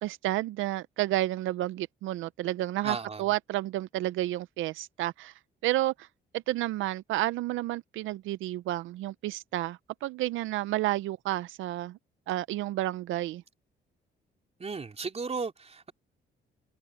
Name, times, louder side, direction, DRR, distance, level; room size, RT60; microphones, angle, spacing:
voice 1, 0.0-5.3 5.6-6.1 6.3-12.0 12.3-13.4, right 15 dB, 85° right, 0.5 m, -31 dB
voice 2, 2.8-3.2 14.6-15.9, right 4 dB, 30° right, 4.0 m, -35 dB
cardioid pair, 90°, 20 cm